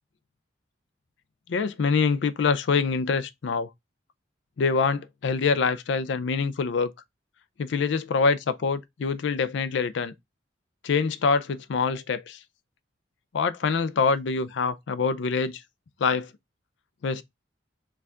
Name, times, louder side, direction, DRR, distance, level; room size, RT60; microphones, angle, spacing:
voice 1, 1.5-3.7 4.6-6.9 7.6-10.1 10.8-12.4 13.3-15.6 16.0-16.3 17.0-17.2, left 5 dB, 70° left, 0.4 m, -25 dB
4.6 x 2.4 x 3.6 m
head